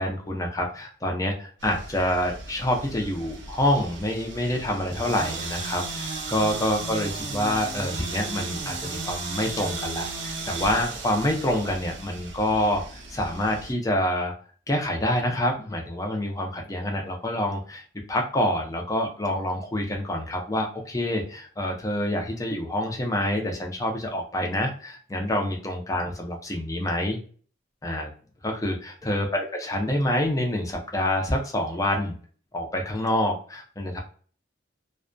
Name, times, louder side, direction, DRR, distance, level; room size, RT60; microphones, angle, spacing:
voice 1, 0.0-14.3 14.7-27.2 27.8-28.1 28.4-32.1 32.5-34.0, left 1 dB, 20° left, 1 dB, 0.5 m, -27 dB
sound 1, 1.6-13.7, right 3 dB, 75° right, 0.6 m, -35 dB
2.2 x 2.2 x 2.5 m, 0.43 s
head